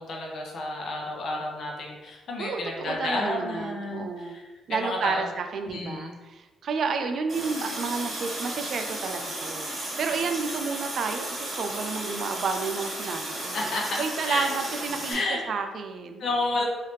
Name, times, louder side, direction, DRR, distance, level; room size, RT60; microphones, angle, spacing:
voice 1, 0.0-4.4 4.7-5.2 5.7-6.2 13.5-14.4 15.1-15.4 16.2-16.6, left 2 dB, 60° left, -1 dB, 0.7 m, -31 dB
voice 2, 2.4-4.4 4.7-13.6 14.0-16.3, right 5 dB, 60° right, 6 dB, 0.3 m, -31 dB
Water tap faucet, 7.3-15.1, right 1 dB, 35° right, 1.4 m, -34 dB
3.2 x 2.7 x 3.2 m, 1.2 s
cardioid pair, 90°, 0 cm